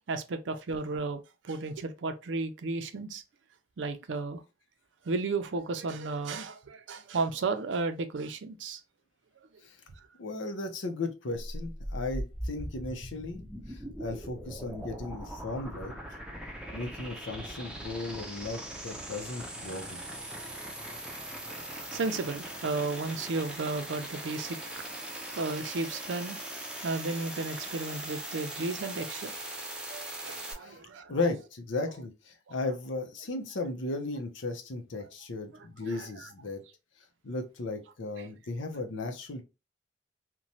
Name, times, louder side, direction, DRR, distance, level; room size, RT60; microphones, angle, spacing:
voice 1, 0.1-1.2 1.4-3.2 3.8-4.4 5.1-8.8 21.5-26.4 26.8-29.4 29.9-31.1 35.8-36.3 38.2-38.3, right 3 dB, 75° right, 0.5 m, -34 dB
voice 2, 10.2-13.4 13.7-15.9 16.7-20.0 30.6-30.8 31.1-36.6 37.2-39.4, left 2 dB, 90° left, 0.6 m, -35 dB
sound 1, 11.4-30.5, right 1 dB, 5° right, 0.5 m, -40 dB
3.0 x 2.2 x 2.6 m
head